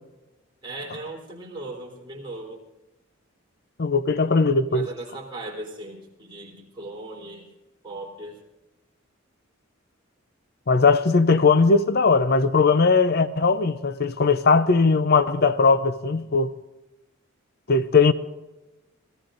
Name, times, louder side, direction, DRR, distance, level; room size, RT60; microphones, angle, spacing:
voice 1, 0.6-2.6 4.7-7.5 7.8-8.4, right 2 dB, 25° right, 3.6 m, -38 dB
voice 2, 3.8-4.9 10.7-16.5 17.7-18.1, left 4 dB, 50° left, 0.6 m, -19 dB
27.0 x 17.5 x 2.6 m
head